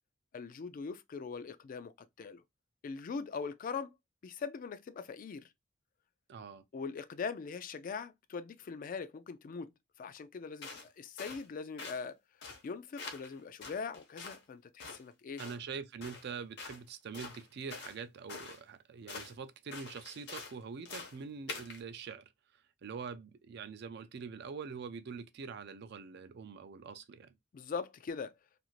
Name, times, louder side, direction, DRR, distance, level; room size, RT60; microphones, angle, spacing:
voice 1, 0.3-1.9 2.2-2.4 2.8-3.9 4.2-5.5 6.7-9.7 10.0-12.2 12.6-15.4 27.5-28.3, left 5 dB, 45° left, 0.3 m, -41 dB
voice 2, 6.3-6.6 15.4-27.4, right 5 dB, 55° right, 0.4 m, -44 dB
sound 1, 10.6-10.9 11.2-11.5 11.8-12.0 12.4-12.7 13.0-13.3 13.6-14.4 14.8-15.0 15.4-15.6 16.0-16.3 16.6-16.8 17.1-18.0 18.3-18.6 19.1-19.3 19.7-20.6 20.9-21.2 21.5-21.8, left 4 dB, 60° left, 0.8 m, -45 dB
2.5 x 2.4 x 2.9 m
head